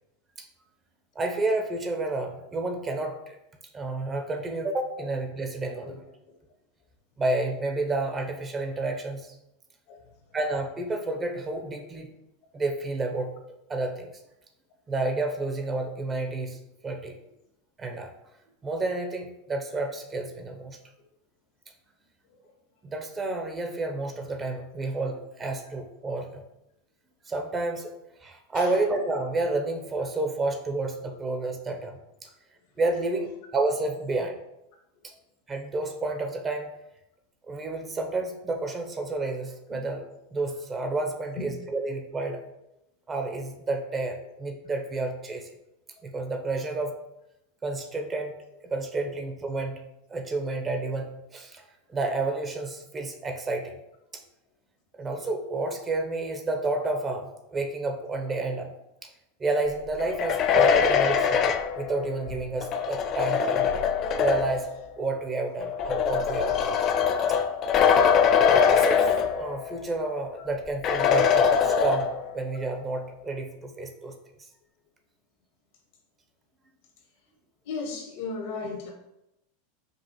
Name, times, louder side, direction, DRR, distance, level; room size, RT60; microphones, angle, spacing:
voice 1, 1.2-3.4 3.7-6.0 7.2-9.3 10.3-12.1 12.5-13.3 13.7-14.1 14.9-17.2 17.8-18.1 18.6-20.8 22.8-26.4 27.3-27.9 28.2-32.0 32.8-34.4 35.5-36.7 37.5-42.4 43.1-45.5 46.0-46.9 47.6-48.3 48.6-49.8 50.1-51.6 51.9-53.7 55.0-58.7 59.0-59.1 59.4-63.7 64.2-64.7 65.0-66.7 68.5-74.1, right 2 dB, 25° right, 4 dB, 0.6 m, -30 dB
sound 1, 60.0-64.7 65.6-69.8 70.1-70.2 70.8-72.4, left 7 dB, 45° left, 0.3 m, -23 dB
voice 2, 77.6-78.9, left 4 dB, 65° left, 1 dB, 1.1 m, -35 dB
5.2 x 2.4 x 2.9 m, 0.87 s
hypercardioid pair, 95°, 0 cm